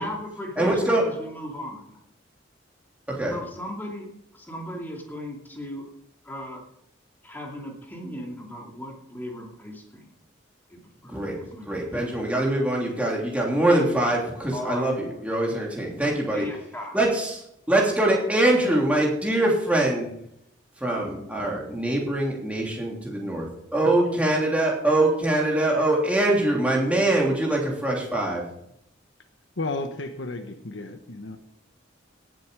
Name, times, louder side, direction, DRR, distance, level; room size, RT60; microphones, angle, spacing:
voice 1, 0.0-1.9 3.3-4.1 4.3-5.9 6.2-6.7 7.2-10.1 10.7-11.9 14.5-14.9 16.3-17.0, left 1 dB, 10° left, -1 dB, 2.6 m, -37 dB
voice 2, 0.6-1.0 3.1-3.3 11.1-11.4 11.7-16.5 16.9-20.1 20.8-28.4, right 1 dB, 5° right, -2 dB, 3.0 m, -23 dB
voice 3, 29.6-31.4, left 2 dB, 75° left, 7 dB, 1.2 m, -33 dB
17.5 x 7.8 x 5.1 m, 0.76 s
head